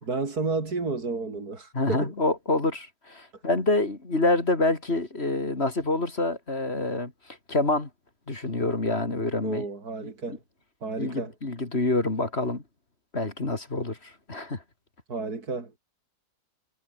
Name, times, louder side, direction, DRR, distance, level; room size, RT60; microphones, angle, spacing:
voice 1, 0.1-2.1 9.4-10.4 10.8-11.3 15.1-15.7, right 3 dB, 65° right, 3.9 m, -31 dB
voice 2, 1.7-7.1 7.5-7.9 8.3-9.6 11.0-12.6 13.1-14.6, left 2 dB, 40° left, 3.3 m, -27 dB
omnidirectional pair, 1.7 m